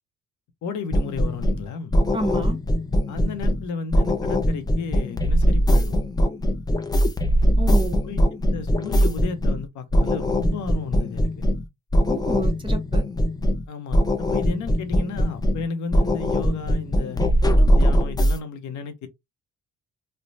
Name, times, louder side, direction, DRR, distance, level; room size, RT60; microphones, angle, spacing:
voice 1, 0.6-1.9 3.1-6.0 8.0-8.2 8.5-11.3 13.7-17.2 17.7-19.1, left 4 dB, 75° left, 0.8 m, -33 dB
sound 1, 0.9-1.7 1.9-3.7 3.9-9.6 9.9-11.6 11.9-13.7 13.9-15.6 15.9-18.4, equal, 15° left, 0.4 m, -21 dB
voice 2, 2.1-2.6 7.6-8.0 12.1-13.0, right 1 dB, 15° right, 0.8 m, -29 dB
3.2 x 2.1 x 2.6 m
cardioid pair, 90°, 30 cm